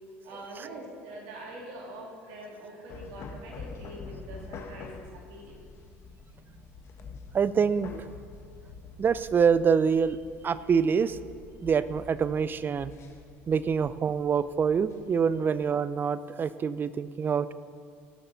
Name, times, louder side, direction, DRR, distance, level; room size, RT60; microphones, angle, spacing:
voice 1, 0.2-5.6, right 1 dB, 75° right, -1 dB, 2.6 m, -44 dB
sound 1, 2.9-15.5, left 4 dB, 50° left, 1.3 m, -47 dB
voice 2, 7.3-8.1 9.0-10.2 10.4-11.2 11.6-12.9 13.5-17.5, right 6 dB, 35° right, 16 dB, 0.5 m, -25 dB
17.0 x 6.7 x 4.0 m, 2.4 s
hypercardioid pair, 80°, 6 cm